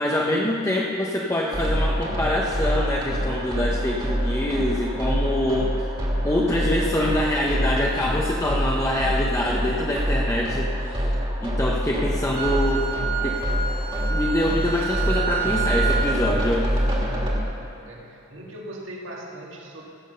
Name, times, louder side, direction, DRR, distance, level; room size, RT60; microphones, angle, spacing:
voice 1, 0.0-5.9 6.2-11.1 11.4-12.9 13.2-13.4 14.1-16.9, left 1 dB, 15° left, -3 dB, 0.7 m, -25 dB
sound 1, 1.5-17.4, equal, 25° right, 1.9 m, -26 dB
Wind instrument woodwind instrument, 12.3-16.2, right 6 dB, 50° right, 1.3 m, -29 dB
voice 2, 17.8-19.8, right 1 dB, 65° right, -2 dB, 1.9 m, -39 dB
16.0 x 7.3 x 6.7 m, 2.6 s
head